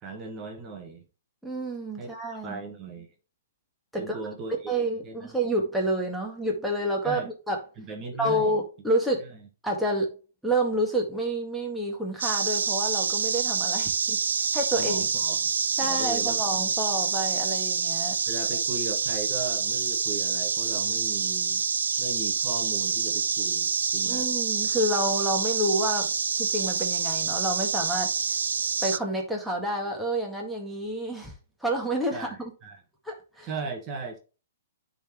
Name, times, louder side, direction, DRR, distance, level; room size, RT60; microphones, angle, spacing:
voice 1, 0.0-1.0 2.0-2.1 2.4-3.1 4.0-4.8 5.0-5.3 7.0-7.3 7.8-8.6 14.7-15.5 15.8-17.0 18.2-21.6 22.0-24.3 32.1-32.8 33.4-34.2, right 3 dB, 30° right, 1.6 m, -37 dB
voice 2, 1.4-2.6 3.9-4.2 4.7-7.6 8.2-9.3 9.6-10.1 10.4-15.1 15.8-18.2 24.0-26.1 26.4-28.1 28.8-31.3 31.6-32.5 33.1-33.5, right 1 dB, ahead, 1.8 m, -29 dB
sound 1, 12.2-29.0, right 6 dB, 80° right, 0.3 m, -27 dB
10.0 x 4.1 x 3.0 m
hypercardioid pair, 130°, 0 cm